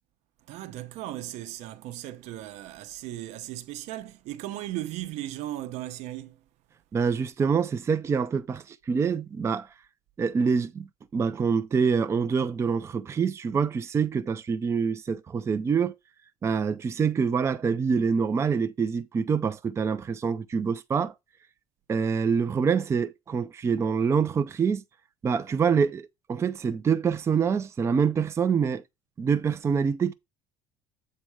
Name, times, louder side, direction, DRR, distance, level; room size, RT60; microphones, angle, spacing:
voice 1, 0.5-6.4, right 14 dB, 70° right, 0.9 m, -37 dB
voice 2, 6.9-9.7 10.2-10.9 11.1-15.9 16.4-21.1 21.9-24.8 25.2-28.8 29.2-30.1, right 6 dB, 25° right, 0.5 m, -26 dB
7.7 x 4.2 x 4.8 m
cardioid pair, 130°, 12 cm